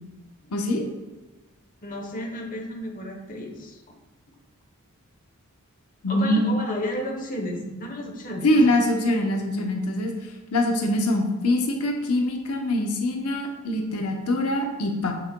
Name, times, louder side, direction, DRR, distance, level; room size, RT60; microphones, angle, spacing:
voice 1, 0.5-0.8 6.0-6.6 8.4-10.1 10.5-15.1, left 1 dB, 85° left, 2 dB, 0.9 m, -23 dB
voice 2, 1.8-3.8 6.1-8.5, left 1 dB, 40° left, 2 dB, 1.0 m, -32 dB
7.5 x 6.3 x 2.3 m, 1.2 s
head